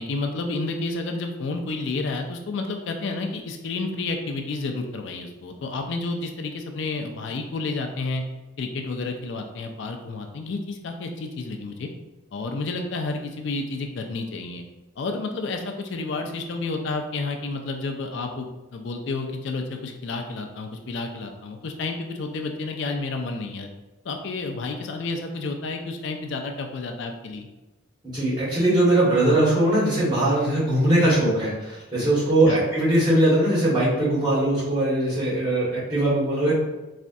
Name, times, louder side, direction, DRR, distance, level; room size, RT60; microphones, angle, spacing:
voice 1, 0.0-8.2 8.6-11.9 12.3-14.6 15.0-23.7 24.0-27.5 32.4-32.6, left 3 dB, 60° left, 4 dB, 0.4 m, -30 dB
voice 2, 28.0-36.5, right 1 dB, 20° right, -10 dB, 1.4 m, -21 dB
4.1 x 2.4 x 2.6 m, 1.1 s
head